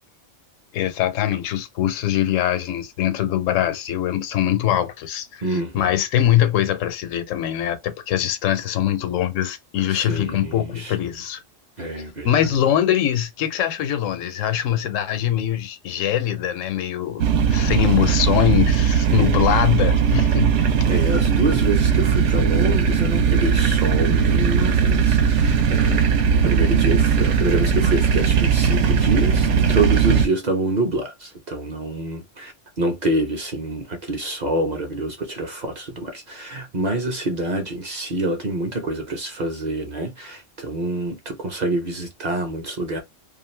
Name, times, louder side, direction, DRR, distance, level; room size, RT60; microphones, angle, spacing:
voice 1, 0.7-5.4 5.7-11.4 12.2-20.5, left 11 dB, 90° left, 1.0 m, -22 dB
voice 2, 5.4-6.0 9.9-11.2 11.8-12.5 19.0-19.6 20.9-26.1 26.4-43.0, right 2 dB, 45° right, 0.6 m, -27 dB
sound 1, 17.2-30.3, right 6 dB, 75° right, 0.9 m, -18 dB
2.4 x 2.4 x 3.1 m
omnidirectional pair, 1.3 m